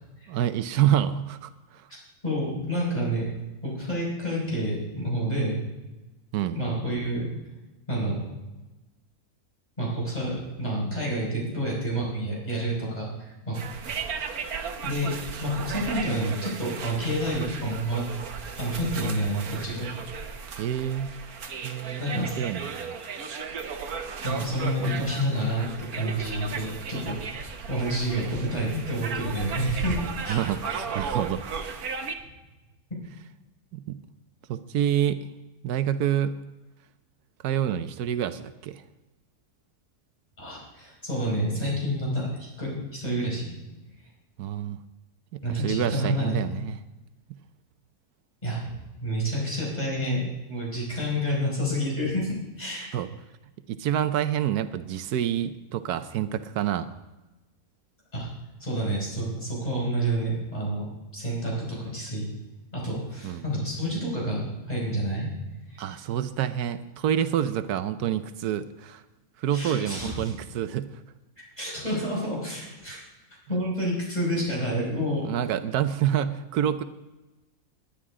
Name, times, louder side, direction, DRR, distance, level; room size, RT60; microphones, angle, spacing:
voice 1, 0.3-1.9 6.3-6.6 20.6-21.1 21.6-22.9 30.3-31.6 33.7-34.0 34.5-35.3 35.6-36.4 37.4-38.8 44.4-44.8 45.5-46.8 52.9-53.1 53.7-56.9 63.2-63.4 65.8-69.0 69.4-71.0 75.2-76.8, right 10 dB, 90° right, 11 dB, 1.2 m, -27 dB
voice 2, 2.2-3.3 3.6-5.6 6.5-7.3 7.9-8.3 9.8-13.6 13.8-14.0 14.8-15.1 15.4-18.0 18.6-19.9 22.0-22.4 24.2-25.7 25.9-27.2 27.4-30.4 40.4-43.6 45.4-46.3 48.4-48.7 49.0-52.9 58.1-58.3 58.6-60.8 61.1-62.3 62.7-65.3 65.7-65.9 69.5-70.3 71.6-73.0 73.5-75.3, equal, 25° left, -5 dB, 5.3 m, -29 dB
sound 1, 13.5-32.1, right 5 dB, 75° right, 1.5 m, -35 dB
20.5 x 10.0 x 3.7 m, 1.1 s
omnidirectional pair, 1.6 m